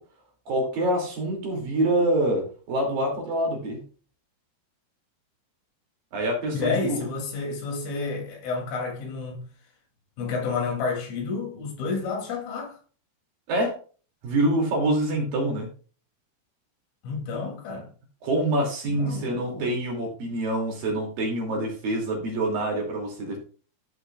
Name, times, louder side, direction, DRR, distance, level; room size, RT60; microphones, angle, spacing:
voice 1, 0.5-3.8 6.1-7.0 13.5-13.8 14.2-15.7 18.2-23.4, right 1 dB, 50° right, 4.0 m, -26 dB
voice 2, 6.5-9.5 10.2-12.8 17.0-17.9 18.9-19.8, left 4 dB, 85° left, 5.5 m, -30 dB
14.0 x 8.9 x 2.4 m
omnidirectional pair, 5.5 m